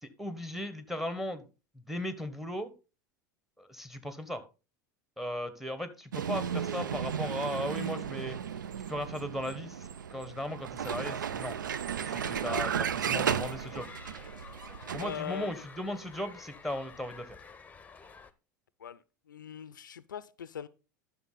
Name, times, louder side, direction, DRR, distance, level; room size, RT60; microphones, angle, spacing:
voice 1, 0.0-1.5 1.9-2.7 3.6-4.4 5.2-8.4 8.9-11.6 12.0-13.9 14.9-17.4, left 1 dB, ahead, 1.2 m, -37 dB
Vehicle, 6.1-15.2, right 8 dB, 80° right, 0.4 m, -34 dB
sound 1, 12.0-18.3, left 5 dB, 15° left, 0.8 m, -50 dB
voice 2, 15.0-15.5 18.8-20.7, left 9 dB, 80° left, 0.5 m, -41 dB
11.0 x 6.0 x 4.0 m
figure-of-eight pair, 80°, 10 cm